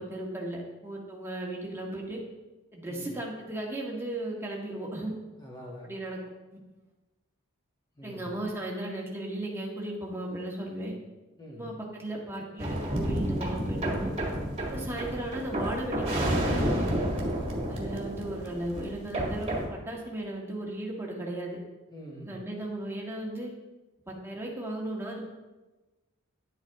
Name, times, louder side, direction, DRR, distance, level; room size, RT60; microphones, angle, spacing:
voice 1, 0.0-2.2 2.7-5.1 5.8-6.2 8.0-10.9 11.6-14.1 14.7-17.1 17.7-21.6 22.2-23.5 24.1-25.3, right 1 dB, 10° right, -2 dB, 1.7 m, -36 dB
voice 2, 2.8-3.2 5.4-6.0 7.9-8.4 11.4-11.7 14.7-15.1 17.3-18.0 21.9-22.4, equal, 20° left, -3 dB, 2.4 m, -45 dB
sound 1, 12.6-19.7, right 1 dB, 25° right, 1.9 m, -30 dB
11.0 x 8.0 x 3.6 m, 1.1 s
head